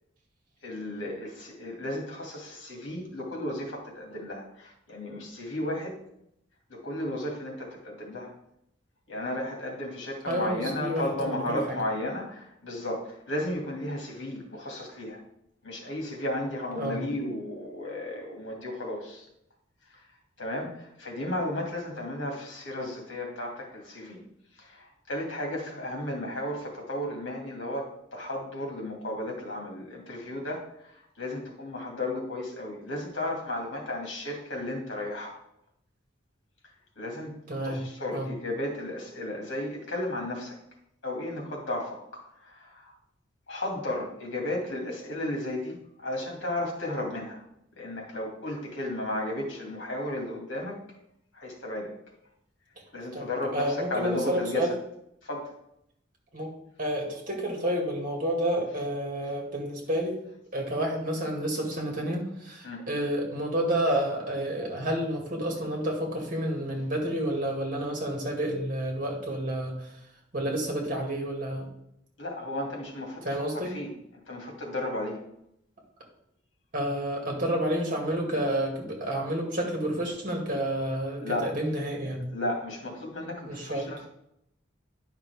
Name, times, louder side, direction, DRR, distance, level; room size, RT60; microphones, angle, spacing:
voice 1, 0.6-6.0 6.7-8.4 9.1-15.2 15.6-19.3 19.9-20.0 20.4-24.2 24.6-35.4 37.0-37.4 37.6-40.6 41.0-42.9 43.5-47.4 47.8-50.8 51.3-51.9 52.9-54.7 55.2-55.5 62.6-62.8 72.2-73.2 73.5-73.9 74.3-75.2 81.2-81.5 82.3-84.1, left 1 dB, 75° left, 0 dB, 2.3 m, -34 dB
voice 2, 10.3-11.7 16.8-17.0 37.5-37.8 38.1-38.3 53.1-54.7 56.3-56.5 56.8-60.2 60.5-69.9 70.3-71.7 73.2-73.8 76.7-82.3 83.5-83.9, right 1 dB, 45° right, 0 dB, 2.1 m, -30 dB
10.5 x 5.8 x 3.5 m, 0.78 s
head